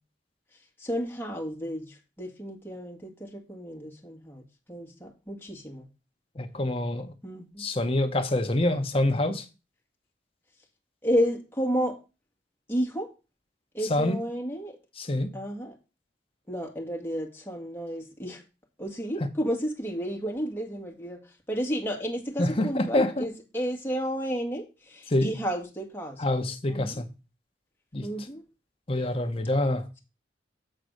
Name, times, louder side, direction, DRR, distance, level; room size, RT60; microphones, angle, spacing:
voice 1, 0.8-4.4 4.7-5.9 7.2-7.7 11.0-12.0 12.7-13.1 13.7-14.8 15.3-15.7 16.5-18.4 18.8-21.2 21.5-26.2 26.7-27.0 28.0-28.4, equal, 15° left, 1.7 m, -32 dB
voice 2, 6.4-7.1 7.6-9.5 13.9-14.2 15.0-15.3 22.4-23.3 25.1-25.3 26.2-27.1 27.9-28.1 28.9-29.9, left 1 dB, 35° left, 0.9 m, -26 dB
7.7 x 4.1 x 6.4 m
head